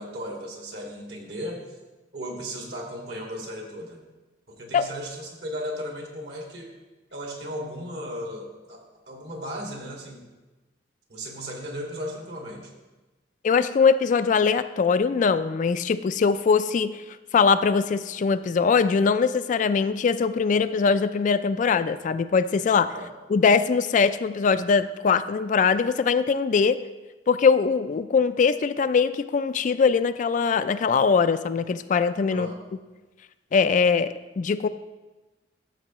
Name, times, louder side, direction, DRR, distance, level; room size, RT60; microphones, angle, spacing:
voice 1, 0.0-1.6 2.1-4.0 4.5-6.7 7.1-8.8 9.1-10.2 11.1-12.7 22.9-23.1 32.3-32.6, equal, 65° right, 0 dB, 2.1 m, -36 dB
voice 2, 13.4-17.0 17.3-22.9 23.3-26.8 27.3-32.5 33.5-34.7, left 5 dB, 45° left, 12 dB, 0.3 m, -22 dB
14.0 x 7.4 x 3.0 m, 1.2 s
head